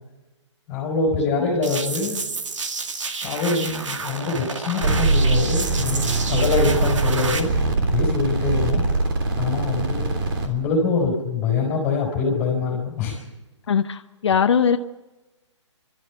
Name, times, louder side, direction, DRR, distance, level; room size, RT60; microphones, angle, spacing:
voice 1, 0.7-2.2 3.2-6.0 6.3-7.5 7.9-8.8 9.4-10.2 10.4-13.2, left 4 dB, 20° left, -3 dB, 4.7 m, -24 dB
sound 1, 1.6-7.4, right 4 dB, 80° right, 2.2 m, -30 dB
sound 2, 4.8-10.5, right 3 dB, 45° right, 3.4 m, -22 dB
voice 2, 13.7-14.8, left 7 dB, 65° left, 7 dB, 0.8 m, -20 dB
29.5 x 13.0 x 7.3 m, 1.1 s
hypercardioid pair, 155°, 16 cm